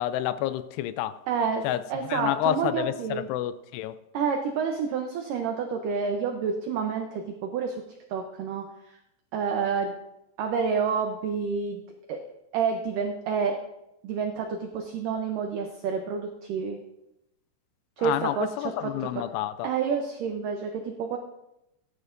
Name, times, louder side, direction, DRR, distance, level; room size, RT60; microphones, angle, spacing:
voice 1, 0.0-1.2 1.6-1.8 2.1-4.0 18.0-19.7, left 13 dB, 85° left, 13 dB, 2.6 m, -29 dB
voice 2, 1.3-3.3 4.1-7.8 8.1-9.0 9.3-9.9 10.4-11.8 12.1-12.2 12.5-13.6 14.0-16.8 18.0-19.2 19.6-21.2, right 6 dB, 85° right, 3 dB, 1.9 m, -29 dB
17.5 x 11.0 x 2.6 m, 0.89 s
omnidirectional pair, 4.9 m